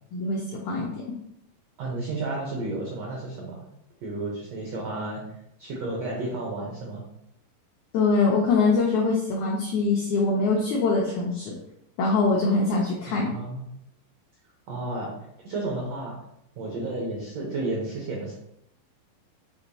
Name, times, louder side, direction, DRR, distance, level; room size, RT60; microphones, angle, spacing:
voice 1, 0.1-0.9 7.9-11.5 12.0-13.3, left 3 dB, 85° left, -2 dB, 1.6 m, -23 dB
voice 2, 1.8-3.6 4.0-7.0 13.1-13.6 14.7-15.1 15.4-16.1 16.6-18.3, right 2 dB, 85° right, -3 dB, 1.4 m, -32 dB
6.4 x 2.9 x 2.7 m, 0.78 s
omnidirectional pair, 4.1 m